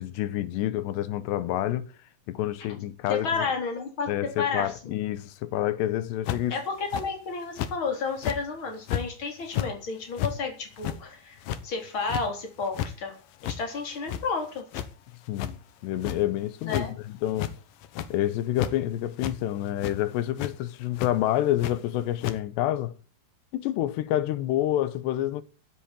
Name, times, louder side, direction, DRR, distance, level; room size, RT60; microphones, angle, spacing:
voice 1, 0.0-1.9 2.3-3.5 4.1-6.6 15.3-15.6 15.8-17.5 18.1-22.9 23.5-25.4, left 13 dB, 90° left, 3.2 m, -28 dB
voice 2, 3.1-4.9 6.5-13.2 13.4-14.7 16.6-16.9, left 4 dB, 30° left, 4.1 m, -31 dB
sound 1, 6.3-6.5 6.9-7.1 7.6-7.7 8.2-8.4 8.9-9.0 9.4-9.7 10.2-10.3 10.8-11.0 11.4-11.6 12.1-12.3 12.6-12.9 13.4-13.6 13.9-14.5 14.7-14.9 15.4-15.5 16.0-16.2 16.6-16.9 17.3-17.5 17.8-18.1 18.6-18.7 19.2-19.3 19.8-20.0 20.4-20.5 21.0-21.1 21.6-21.7 22.2-22.4, left 11 dB, 65° left, 2.5 m, -31 dB
13.5 x 8.6 x 8.8 m
omnidirectional pair, 4.8 m